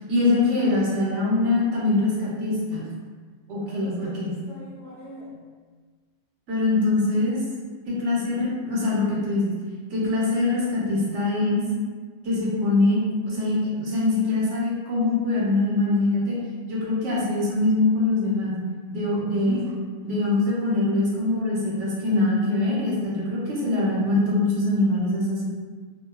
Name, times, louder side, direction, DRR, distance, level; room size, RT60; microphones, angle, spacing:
voice 1, 0.1-2.9 3.5-4.3 6.5-7.4 7.9-9.5 9.9-11.6 12.2-16.4 16.7-18.6 18.9-19.6 20.0-25.4, left 2 dB, 70° right, -5 dB, 1.0 m, -23 dB
voice 2, 3.5-5.4 19.3-19.7, left 1 dB, 55° left, -8 dB, 0.8 m, -38 dB
2.4 x 2.1 x 2.9 m, 1.5 s
omnidirectional pair, 1.3 m